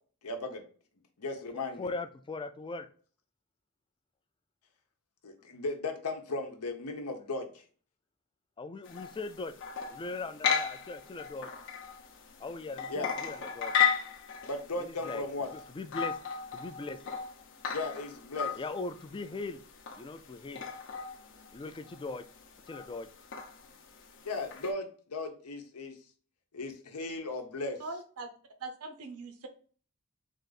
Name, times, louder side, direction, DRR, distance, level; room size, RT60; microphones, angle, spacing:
voice 1, 0.2-0.6 1.2-1.9 5.2-7.6 12.9-13.1 14.4-15.5 17.7-18.6 24.2-26.0 26.5-27.8, left 2 dB, 90° left, 5 dB, 0.8 m, -36 dB
voice 2, 1.8-2.9 8.6-9.5 9.9-11.5 12.4-13.7 14.8-15.2 15.5-16.2 16.5-17.0 18.6-19.6 19.9-20.6 21.5-22.3 22.7-23.1, left 3 dB, 20° left, 9 dB, 0.3 m, -39 dB
sound 1, 8.8-24.7, left 7 dB, 60° left, 0.6 m, -36 dB
voice 3, 27.8-28.3 28.6-29.5, right 3 dB, 80° right, 6 dB, 0.8 m, -41 dB
3.8 x 2.5 x 3.9 m, 0.42 s
head